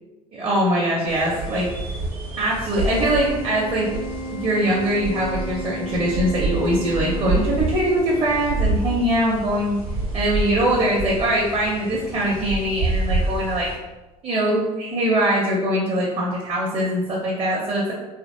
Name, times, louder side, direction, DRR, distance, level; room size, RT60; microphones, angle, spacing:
voice 1, 0.4-1.7 2.4-3.9 4.4-9.8 10.1-13.7 14.2-17.9, right 1 dB, 30° right, -5 dB, 0.7 m, -22 dB
sound 1, 1.1-13.7, right 2 dB, 80° right, 0.8 m, -28 dB
Organ, 3.0-8.0, right 1 dB, 30° left, 0.5 m, -34 dB
2.9 x 2.5 x 2.6 m, 1.1 s
figure-of-eight pair, 60°, 19 cm